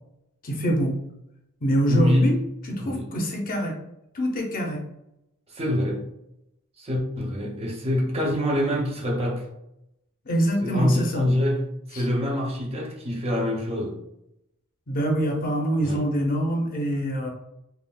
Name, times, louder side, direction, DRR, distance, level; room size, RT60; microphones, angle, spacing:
voice 1, 0.4-0.9 1.6-2.4 2.7-3.8 4.1-4.8 10.2-11.2 11.9-12.1 14.9-17.3, equal, 40° left, 0 dB, 0.6 m, -25 dB
voice 2, 1.9-2.4 2.8-3.1 5.5-6.0 6.8-9.5 10.6-14.0 15.8-16.0, left 1 dB, 25° right, -1 dB, 0.5 m, -25 dB
3.5 x 2.4 x 2.2 m, 0.82 s
head